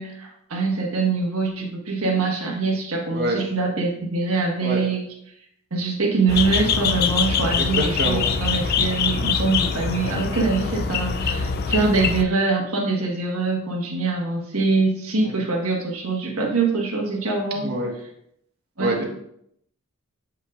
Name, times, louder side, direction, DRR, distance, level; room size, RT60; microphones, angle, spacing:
voice 1, 0.0-5.0 5.7-17.7 18.8-19.0, right 3 dB, 70° right, 0 dB, 1.5 m, -24 dB
sound 1, 6.3-12.2, left 6 dB, 45° left, 0.4 m, -24 dB
voice 2, 7.6-8.2 8.6-8.7 17.6-17.9 18.8-19.0, right 1 dB, 50° right, 1 dB, 1.2 m, -25 dB
7.5 x 5.4 x 2.5 m, 0.74 s
head